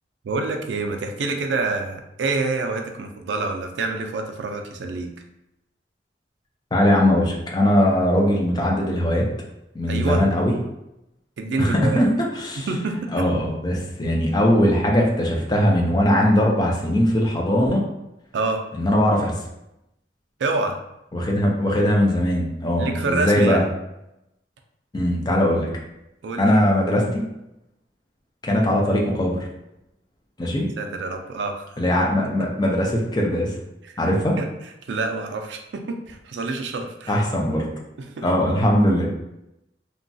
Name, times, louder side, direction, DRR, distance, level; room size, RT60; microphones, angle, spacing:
voice 1, 0.2-5.1 9.9-10.3 11.4-12.1 12.6-13.3 18.3-18.6 20.4-20.8 22.8-23.7 26.2-26.4 30.8-31.7 32.2-32.5 34.4-34.5 34.9-37.2 38.0-38.3, right 3 dB, 85° right, 4 dB, 0.4 m, -27 dB
voice 2, 6.7-9.3 9.7-10.5 11.6-12.7 13.1-17.8 18.7-19.3 21.1-23.6 24.9-25.7 26.4-27.3 28.4-29.4 30.4-30.7 31.8-33.5 34.0-34.4 37.1-37.6 38.2-39.1, left 1 dB, 25° left, -1 dB, 0.5 m, -20 dB
2.9 x 2.2 x 2.6 m, 0.87 s
head